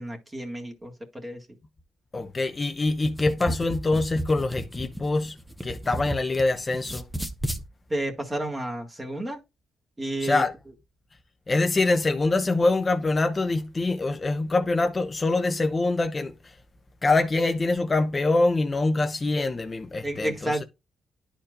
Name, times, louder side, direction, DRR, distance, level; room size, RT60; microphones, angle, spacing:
voice 1, 0.0-1.5 7.9-9.4 10.0-10.5 20.0-20.6, right 1 dB, 15° right, 1.8 m, -31 dB
voice 2, 2.1-5.4 5.6-7.0 10.2-10.5 11.5-16.6 17.0-20.6, left 2 dB, 25° left, 0.7 m, -24 dB
sound 1, 3.0-6.4 6.7-7.6, right 1 dB, ahead, 0.9 m, -33 dB
11.0 x 4.3 x 2.5 m
cardioid pair, 90°, 0 cm